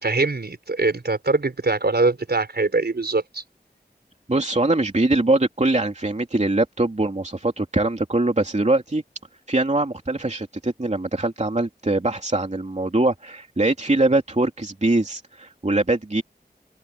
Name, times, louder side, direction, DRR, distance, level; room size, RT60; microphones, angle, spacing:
voice 1, 0.0-3.4, right 3 dB, 75° right, 5.1 m, -22 dB
voice 2, 4.3-9.0 9.5-16.2, right 2 dB, 40° right, 2.9 m, -22 dB
open air
wide cardioid pair, 50°, 17 cm